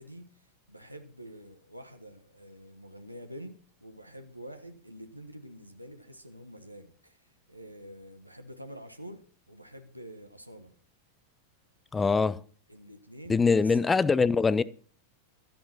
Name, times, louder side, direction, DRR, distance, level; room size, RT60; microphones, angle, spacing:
voice 1, 0.0-10.7 11.9-12.2 12.7-14.1, equal, 90° right, 1.4 m, -47 dB
voice 2, 11.9-12.4 13.3-14.6, left 4 dB, 15° left, 0.5 m, -23 dB
13.0 x 10.5 x 5.9 m
figure-of-eight pair, 90°, 0 cm